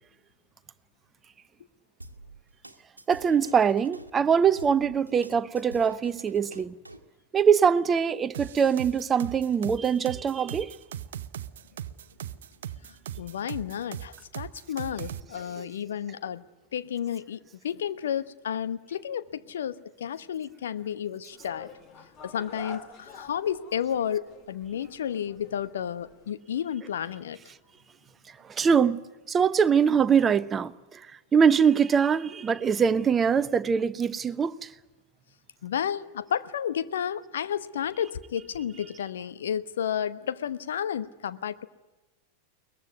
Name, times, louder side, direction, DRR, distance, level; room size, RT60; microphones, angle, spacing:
sound 1, 2.0-4.1 4.6-7.1, right 2 dB, 85° right, 1.4 m, -47 dB
voice 1, 3.1-6.7 7.3-10.8 28.5-29.0 29.3-31.0 31.3-34.7, right 7 dB, 20° right, 0.9 m, -23 dB
sound 2, 8.3-15.2, right 10 dB, 60° right, 0.8 m, -38 dB
voice 2, 12.8-16.4 16.7-21.7 22.2-27.4 35.6-41.7, left 9 dB, 60° left, 1.0 m, -32 dB
sound 3, 21.3-26.3, left 4 dB, 30° left, 2.5 m, -47 dB
22.5 x 20.0 x 9.3 m
figure-of-eight pair, 90°, 0 cm